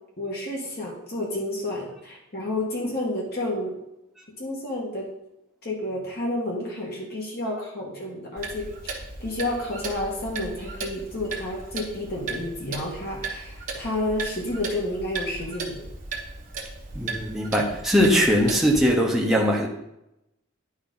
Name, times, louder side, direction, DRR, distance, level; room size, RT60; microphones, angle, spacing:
voice 1, 0.2-3.7 4.4-5.1 5.6-15.9, left 1 dB, 50° left, -3 dB, 1.7 m, -30 dB
Clock, 8.4-18.9, right 4 dB, 40° right, 1.2 m, -36 dB
voice 2, 16.9-19.7, equal, ahead, -2 dB, 1.0 m, -21 dB
10.5 x 5.0 x 3.9 m, 0.85 s
head